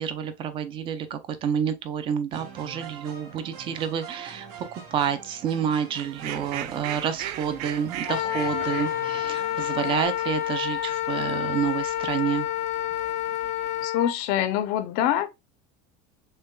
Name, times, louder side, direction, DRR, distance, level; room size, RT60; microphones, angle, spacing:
voice 1, 0.0-12.5, right 8 dB, 25° right, 0.4 m, -29 dB
sound 1, 2.3-10.1, right 6 dB, 70° right, 2.3 m, -43 dB
Fowl, 6.0-13.8, right 11 dB, 90° right, 0.6 m, -40 dB
Wind instrument woodwind instrument, 8.1-14.1, left 12 dB, 80° left, 0.8 m, -28 dB
voice 2, 13.8-15.3, left 11 dB, 50° left, 0.6 m, -25 dB
6.5 x 2.3 x 2.2 m
cardioid pair, 180°, 19 cm